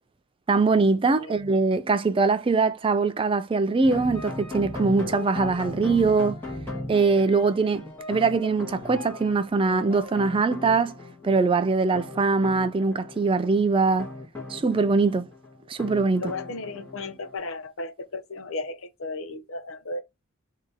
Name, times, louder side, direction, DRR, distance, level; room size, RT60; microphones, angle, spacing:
voice 1, 0.5-6.4 6.9-10.9 11.2-14.1 14.5-15.2 15.7-16.3, right 4 dB, 25° right, 0.3 m, -22 dB
sound 1, 3.8-17.4, left 2 dB, 10° left, 1.7 m, -38 dB
voice 2, 16.2-20.0, left 2 dB, 65° left, 0.7 m, -35 dB
3.8 x 2.8 x 4.6 m
head